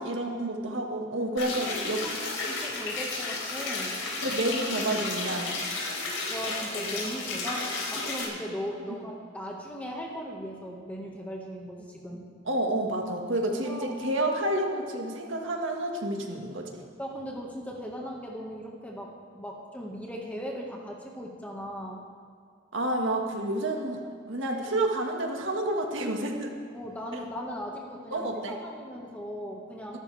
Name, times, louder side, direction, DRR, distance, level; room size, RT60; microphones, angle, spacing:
voice 1, 0.0-2.0 4.2-5.5 12.5-16.7 22.7-26.6 28.1-28.6, right 1 dB, 75° right, 1 dB, 1.8 m, -29 dB
sound 1, 1.4-8.2, left 3 dB, 75° left, 4.2 m, -32 dB
voice 2, 1.8-2.2 2.5-4.1 6.3-12.3 13.6-14.0 17.0-22.1 26.7-30.0, equal, 10° left, -2 dB, 1.7 m, -38 dB
23.5 x 12.5 x 3.5 m, 2.2 s
head